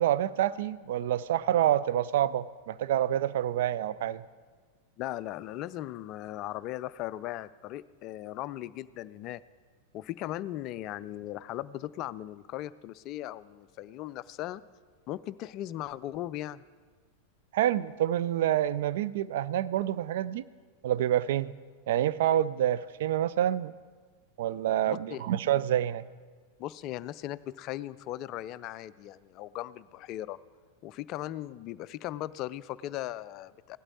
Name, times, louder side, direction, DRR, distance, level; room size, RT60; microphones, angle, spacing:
voice 1, 0.0-4.2 17.5-20.4 20.8-21.5 21.9-23.7 24.4-26.0, right 11 dB, 55° right, 16 dB, 0.3 m, -27 dB
voice 2, 5.0-9.4 9.9-14.6 15.1-16.6 24.9-25.2 26.6-30.4 30.8-33.8, left 14 dB, 40° left, 17 dB, 0.3 m, -38 dB
17.0 x 12.0 x 4.0 m, 1.5 s
figure-of-eight pair, 90°, 0 cm